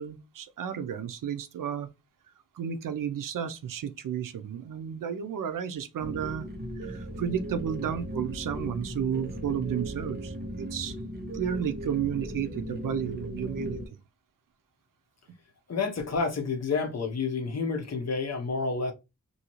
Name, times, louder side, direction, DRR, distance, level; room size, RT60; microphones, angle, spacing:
voice 1, 0.0-1.9 2.5-6.5 6.8-11.0 11.3-13.8, right 8 dB, 90° right, 0.5 m, -32 dB
sound 1, 6.0-13.9, equal, 30° right, 0.8 m, -37 dB
voice 2, 15.7-18.9, left 4 dB, 55° left, 0.8 m, -29 dB
2.7 x 2.6 x 2.9 m
wide cardioid pair, 105°, 31 cm